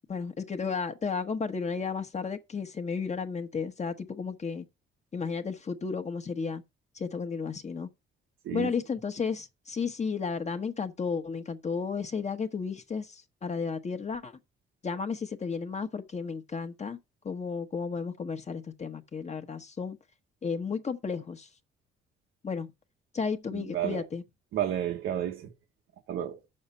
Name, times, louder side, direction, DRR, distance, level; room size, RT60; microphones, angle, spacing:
voice 1, 0.1-4.7 5.1-6.6 6.9-7.9 8.5-14.4 14.8-17.0 17.2-20.0 20.4-21.5 22.4-22.7 23.1-24.2, left 5 dB, 35° left, 1.1 m, -33 dB
voice 2, 23.5-24.0 24.5-25.5 26.1-26.4, right 11 dB, 85° right, 1.3 m, -31 dB
7.2 x 6.5 x 5.4 m
cardioid pair, 90°, 20 cm